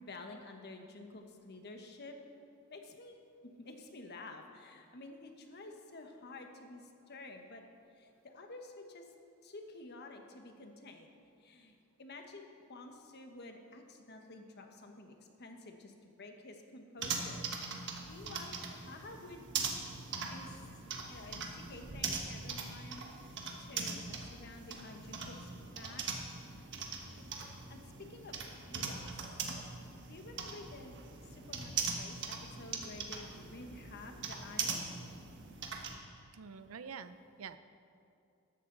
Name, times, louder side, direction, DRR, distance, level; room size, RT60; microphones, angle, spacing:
voice 1, 0.0-2.2 2.7-7.6 7.9-9.1 9.4-11.1 11.4-17.4 17.7-17.8 18.1-18.6 18.9-19.5 20.3-20.6 21.1-25.5 25.7-26.0 27.1-28.4 28.6-29.1 30.1-34.9, left 2 dB, 50° left, 4 dB, 1.2 m, -51 dB
sound 1, 17.0-35.9, right 5 dB, 55° right, 1.3 m, -41 dB
voice 2, 36.3-37.6, right 6 dB, 85° right, 12 dB, 0.6 m, -47 dB
14.0 x 12.5 x 3.9 m, 2.5 s
head